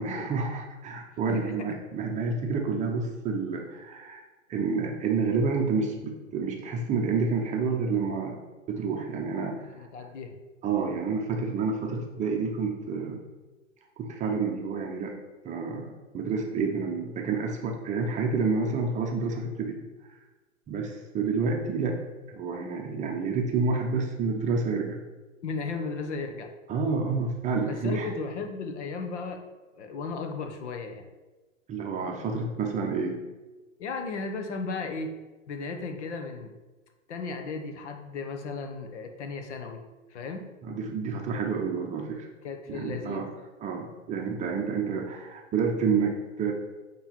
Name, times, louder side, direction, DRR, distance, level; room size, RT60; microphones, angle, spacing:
voice 1, 0.0-4.2 4.5-8.4 8.7-9.8 10.6-13.2 14.0-15.1 15.4-19.8 20.7-22.0 22.3-25.0 26.7-28.1 31.7-33.2 40.6-42.3 42.7-43.3 43.6-46.5, right 4 dB, 20° right, 1 dB, 0.7 m, -29 dB
voice 2, 1.3-1.8 9.7-10.3 25.4-26.5 27.7-29.4 29.8-31.1 33.8-35.2 35.5-36.5 37.1-39.8 40.1-40.5 42.4-43.2, left 4 dB, 60° left, 5 dB, 1.0 m, -35 dB
8.6 x 3.1 x 4.3 m, 1.2 s
hypercardioid pair, 110°, 39 cm